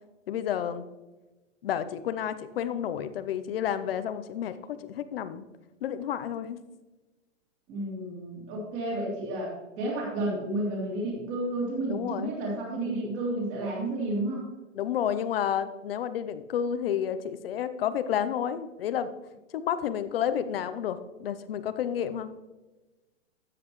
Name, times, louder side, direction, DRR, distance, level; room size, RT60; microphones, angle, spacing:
voice 1, 0.3-0.9 1.6-5.4 5.8-6.6 11.9-12.3 14.7-19.1 19.5-22.3, left 9 dB, 50° left, 12 dB, 0.7 m, -30 dB
voice 2, 7.7-14.5, right 1 dB, 30° right, -2 dB, 2.9 m, -31 dB
13.0 x 7.8 x 3.1 m, 1.1 s
hypercardioid pair, 165°, 38 cm